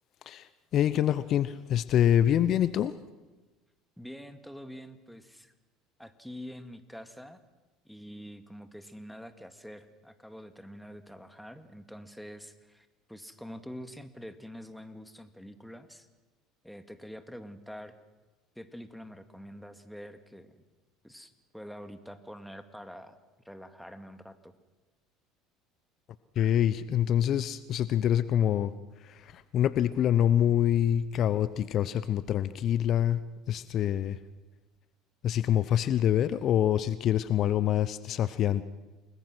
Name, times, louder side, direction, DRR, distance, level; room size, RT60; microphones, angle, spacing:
voice 1, 0.3-2.9 26.4-28.7 29.0-33.2 33.5-34.2 35.2-38.6, left 10 dB, 50° left, 15 dB, 0.8 m, -26 dB
voice 2, 4.0-5.5 6.0-7.4 7.8-16.1 16.6-18.0 18.6-20.6 21.0-23.2 23.4-24.5, equal, ahead, 9 dB, 2.2 m, -46 dB
29.0 x 20.5 x 6.2 m, 1.2 s
hypercardioid pair, 70°, 0 cm